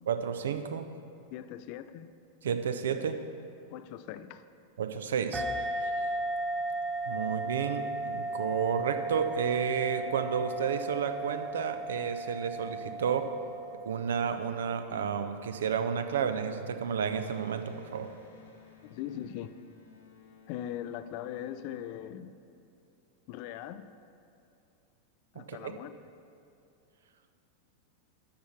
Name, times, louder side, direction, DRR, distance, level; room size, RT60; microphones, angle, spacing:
voice 1, 0.1-0.8 2.4-3.2 4.8-5.4 7.1-13.3 13.8-18.1 25.5-25.6, right 7 dB, 65° right, 8 dB, 0.5 m, -31 dB
voice 2, 1.3-2.1 3.7-4.4 18.8-19.5 20.5-22.4 23.3-23.9 25.3-26.0, left 11 dB, 45° left, 12 dB, 0.3 m, -40 dB
sound 1, 5.3-14.4, right 2 dB, 20° right, 0.6 m, -35 dB
Electric guitar, 17.1-22.6, left 5 dB, 70° left, 1.2 m, -57 dB
8.5 x 5.8 x 5.8 m, 2.7 s
figure-of-eight pair, 90°, 0 cm